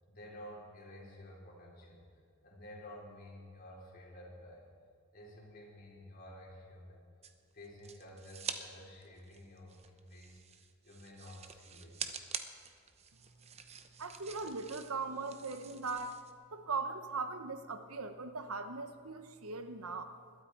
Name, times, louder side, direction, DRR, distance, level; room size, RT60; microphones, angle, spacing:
voice 1, 0.1-2.1 2.4-4.7 5.1-7.0 7.5-11.9, left 1 dB, 45° left, -4 dB, 4.4 m, -52 dB
sound 1, 7.2-8.6 9.0-16.3, right 7 dB, 30° right, 0.8 m, -46 dB
voice 2, 14.0-16.1 16.5-20.1, right 4 dB, 90° right, 8 dB, 1.1 m, -39 dB
21.0 x 13.0 x 4.6 m, 2.1 s
head